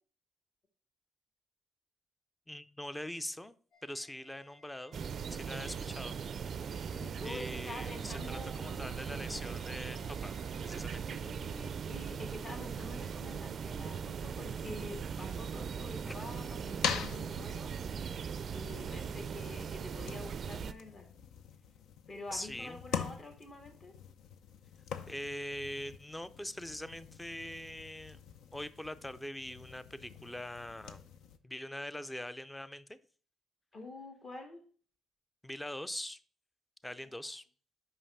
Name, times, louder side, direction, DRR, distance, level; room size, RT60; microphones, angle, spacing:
voice 1, 2.5-3.5 3.8-5.0 5.3-6.2 6.6-6.9 7.2-10.4 10.6-11.0 16.1-16.2 22.3-22.8 25.1-28.2 28.5-31.1 31.4-33.0 35.4-36.2 36.8-37.4, left 1 dB, 10° left, 0.5 m, -42 dB
sound 1, 3.7-10.8, left 2 dB, 65° left, 2.6 m, -60 dB
sound 2, 4.9-20.7, right 7 dB, 55° right, 0.4 m, -39 dB
voice 2, 6.9-9.1 11.1-17.8 18.5-21.1 22.1-23.9 33.7-34.6 37.0-37.1, left 2 dB, 45° left, 2.1 m, -47 dB
sound 3, 14.6-31.4, left 7 dB, 80° left, 0.6 m, -44 dB
5.5 x 5.3 x 5.5 m
cardioid pair, 90°, 0 cm